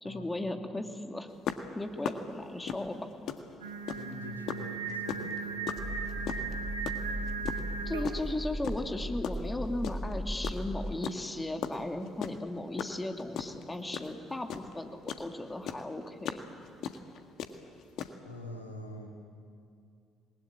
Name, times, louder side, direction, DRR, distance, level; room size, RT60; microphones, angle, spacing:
voice 1, 0.0-1.3 1.8-3.1 7.9-16.4, left 2 dB, 15° left, 5 dB, 2.5 m, -36 dB
sound 1, 1.4-4.2 4.5-8.2 8.6-10.2 10.4-15.3 15.6-18.1, left 8 dB, 55° left, 1.7 m, -37 dB
Singing, 3.6-8.4, right 5 dB, 80° right, 1.4 m, -37 dB
voice 2, 3.9-6.3 18.2-19.1, left 1 dB, 90° left, 1 dB, 2.6 m, -45 dB
sound 2, 5.8-10.9, equal, 15° right, 1.7 m, -37 dB
27.5 x 21.0 x 9.8 m, 2.3 s
figure-of-eight pair, 45°, 0 cm